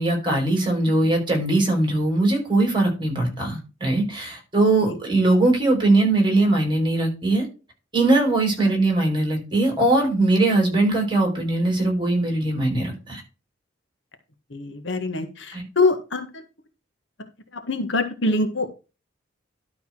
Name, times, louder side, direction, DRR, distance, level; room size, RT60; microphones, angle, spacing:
voice 1, 0.0-7.5 7.9-13.2 15.5-15.6, right 2 dB, 25° right, 2 dB, 5.3 m, -21 dB
voice 2, 14.5-16.3 17.7-18.7, left 3 dB, 70° left, 6 dB, 1.7 m, -24 dB
12.5 x 4.2 x 6.1 m, 0.31 s
head